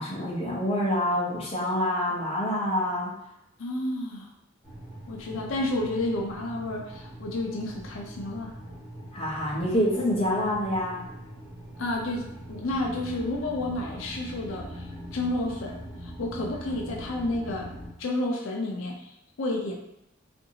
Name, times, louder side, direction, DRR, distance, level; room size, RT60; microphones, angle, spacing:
voice 1, 0.0-3.1 9.1-11.0, left 1 dB, 30° left, -4 dB, 0.6 m, -27 dB
voice 2, 3.6-4.3 5.1-8.5 11.8-17.7 18.0-19.1 19.4-19.7, left 1 dB, 75° left, 0 dB, 0.4 m, -31 dB
sound 1, 4.6-17.9, equal, ahead, 1.5 m, -42 dB
2.7 x 2.6 x 2.7 m, 0.81 s
head